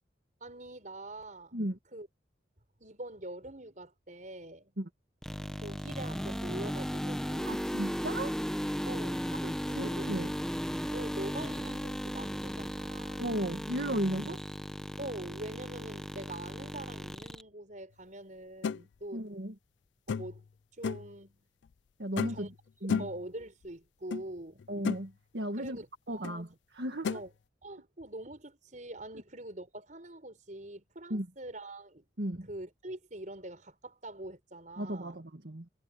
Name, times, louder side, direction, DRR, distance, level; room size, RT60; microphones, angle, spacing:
voice 1, 0.4-1.6 1.9-2.1 2.8-4.7 5.5-7.6 8.9-9.3 9.7-9.9 10.9-13.2 15.0-19.2 20.1-20.4 20.8-21.4 22.3-22.5 23.0-24.6 25.5-26.5 27.1-27.3 27.6-32.0 32.4-35.2, right 1 dB, 40° right, 5.5 m, -44 dB
sound 1, 5.2-17.4, equal, 5° left, 1.2 m, -36 dB
voice 2, 7.5-8.3 9.4-10.3 13.2-14.4 19.1-19.5 22.0-22.5 22.8-23.1 24.7-26.5 26.7-27.1 31.1-31.3 32.2-32.5 34.8-35.7, right 1 dB, 60° right, 1.9 m, -35 dB
sound 2, 18.6-18.8 20.1-20.4 20.8-21.1 22.2-22.5 22.9-23.2 24.1-24.2 24.6-25.0 26.2-26.4 27.0-27.2, left 6 dB, 75° left, 0.4 m, -33 dB
head